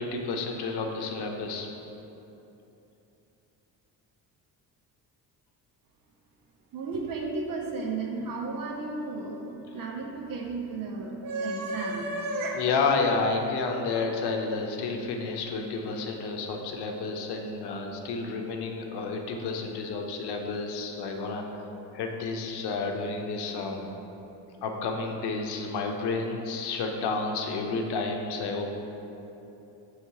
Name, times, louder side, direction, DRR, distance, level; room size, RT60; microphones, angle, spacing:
voice 1, 0.0-1.7 12.5-21.4 21.9-23.9 24.6-28.7, left 4 dB, 70° left, 3 dB, 0.8 m, -30 dB
voice 2, 6.7-12.6, right 3 dB, 55° right, 1 dB, 0.8 m, -33 dB
6.6 x 3.2 x 4.7 m, 3.0 s
cardioid pair, 135°, 41 cm